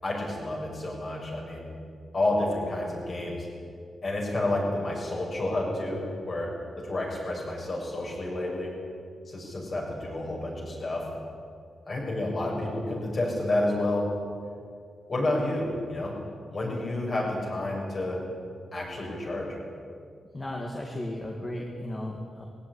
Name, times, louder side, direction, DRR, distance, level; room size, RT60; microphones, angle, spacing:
voice 1, 0.0-1.7 2.1-3.5 4.0-8.7 9.3-11.1 11.9-14.1 15.1-16.2 16.5-18.2 18.7-19.6, left 1 dB, 40° left, -1 dB, 6.9 m, -30 dB
voice 2, 20.3-22.4, left 1 dB, 20° left, 0 dB, 2.3 m, -35 dB
20.5 x 17.0 x 9.8 m, 2.3 s
wide cardioid pair, 145°, 0 cm